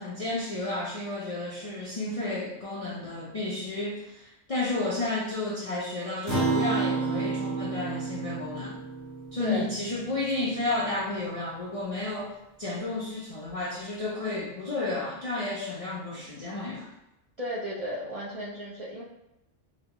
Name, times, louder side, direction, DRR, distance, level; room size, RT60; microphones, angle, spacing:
voice 1, 0.0-8.8 9.3-12.3 12.6-16.9, left 2 dB, 55° left, -6 dB, 0.4 m, -32 dB
Acoustic guitar, 6.3-11.0, right 4 dB, 45° right, 1.3 m, -31 dB
voice 2, 17.4-19.0, equal, 65° right, -6 dB, 0.3 m, -34 dB
4.0 x 2.1 x 2.8 m, 0.90 s
omnidirectional pair, 1.3 m